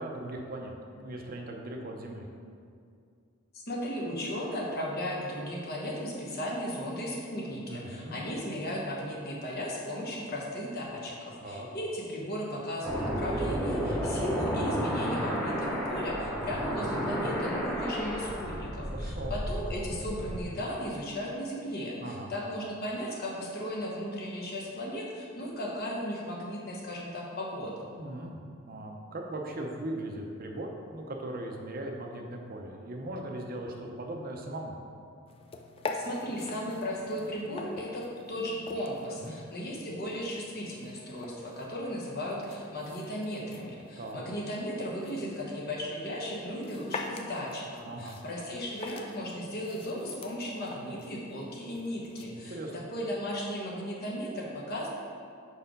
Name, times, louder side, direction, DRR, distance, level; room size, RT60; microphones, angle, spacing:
voice 1, 0.0-2.3 7.7-8.2 11.4-11.7 18.9-19.4 22.0-22.3 28.0-28.4 28.7-34.8 39.1-39.4 44.0-44.2 47.8-48.2 52.3-52.9, right 1 dB, 45° right, 1 dB, 0.6 m, -39 dB
voice 2, 3.5-27.9 35.9-54.9, equal, 50° left, -3 dB, 1.1 m, -36 dB
sound 1, 12.8-20.4, equal, 5° left, 0.9 m, -32 dB
sound 2, 35.3-52.2, left 3 dB, 30° left, 0.4 m, -45 dB
4.9 x 4.3 x 5.2 m, 2.3 s
head